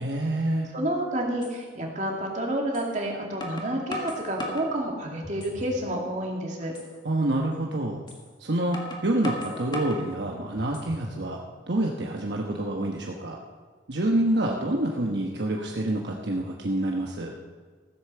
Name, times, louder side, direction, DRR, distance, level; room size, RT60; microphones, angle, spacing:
voice 1, 0.0-0.7 7.0-8.0 8.4-8.8 9.0-13.4 13.9-17.3, right 1 dB, 65° right, 0 dB, 1.1 m, -27 dB
voice 2, 0.7-6.7, right 1 dB, 40° right, 0 dB, 2.3 m, -29 dB
sound 1, 1.4-1.6 2.7-2.9 3.4-4.7 5.2-5.8 6.2-6.3 6.7-6.9 8.1-8.2 8.7-10.1 10.6-11.1, left 1 dB, 25° left, 1.7 m, -36 dB
15.0 x 8.2 x 6.8 m, 1.5 s
head